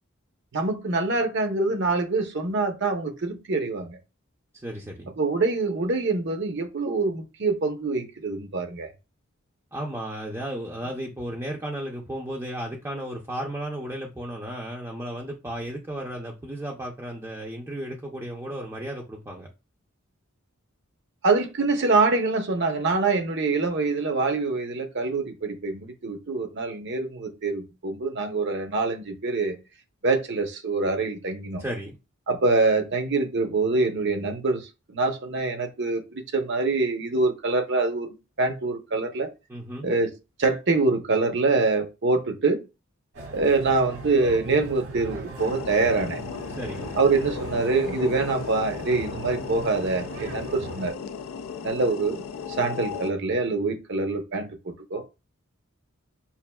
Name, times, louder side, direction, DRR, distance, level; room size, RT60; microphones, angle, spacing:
voice 1, 0.5-4.0 5.2-8.9 21.2-29.6 30.0-31.6 32.3-39.3 39.8-40.1 40.4-42.6 43.3-46.2 46.9-50.9 51.6-52.2 52.6-54.5 54.9-55.0, right 3 dB, 55° right, 0.8 m, -25 dB
voice 2, 4.5-5.1 9.7-19.5 31.6-32.0 39.5-39.9 46.5-46.9, right 1 dB, 15° right, 0.5 m, -34 dB
sound 1, 43.1-50.9, right 2 dB, 75° right, 1.7 m, -39 dB
sound 2, 45.4-53.1, left 6 dB, 85° left, 0.4 m, -36 dB
5.6 x 2.5 x 2.2 m
head